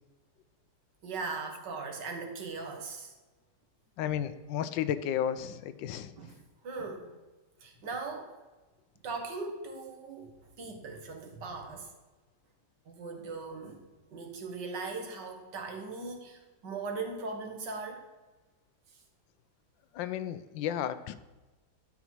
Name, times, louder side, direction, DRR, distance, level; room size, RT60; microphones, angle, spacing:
voice 1, 1.0-3.1 6.2-7.1 7.6-8.4 9.0-10.3 10.6-11.9 12.9-13.8 14.1-18.1, right 4 dB, 70° right, 3 dB, 2.0 m, -39 dB
voice 2, 4.0-6.1 19.9-21.2, left 10 dB, 85° left, 13 dB, 1.3 m, -33 dB
11.0 x 5.9 x 4.5 m, 1.2 s
omnidirectional pair, 2.0 m